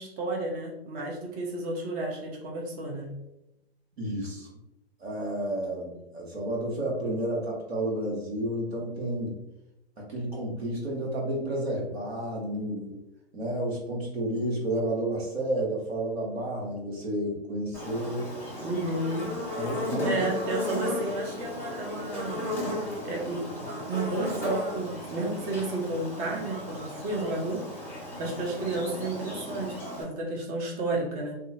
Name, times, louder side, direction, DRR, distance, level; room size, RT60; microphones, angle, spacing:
voice 1, 0.0-3.1 18.6-19.3 20.0-22.5 23.0-27.9 28.2-31.3, right 2 dB, 30° right, -1 dB, 0.8 m, -32 dB
voice 2, 4.0-4.5 5.0-9.3 10.0-13.0 13.3-18.3 19.5-20.1, right 1 dB, 80° right, -2 dB, 1.0 m, -31 dB
Buzz, 17.7-30.0, left 1 dB, 5° left, 1.4 m, -35 dB
2.7 x 2.4 x 2.7 m, 0.88 s
hypercardioid pair, 115°, 31 cm